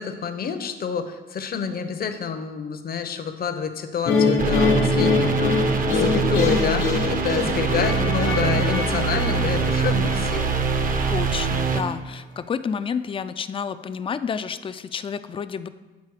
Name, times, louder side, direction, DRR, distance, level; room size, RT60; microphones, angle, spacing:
voice 1, 0.0-10.5, left 7 dB, 50° left, 8 dB, 0.7 m, -28 dB
sound 1, 4.1-11.2, left 4 dB, 90° left, 1.1 m, -24 dB
sound 2, 4.4-11.8, right 5 dB, 45° right, 0.7 m, -23 dB
voice 2, 8.2-8.8 11.1-15.7, left 6 dB, 25° left, 12 dB, 0.3 m, -30 dB
8.3 x 4.1 x 4.8 m, 1.2 s
cardioid pair, 90°, 20 cm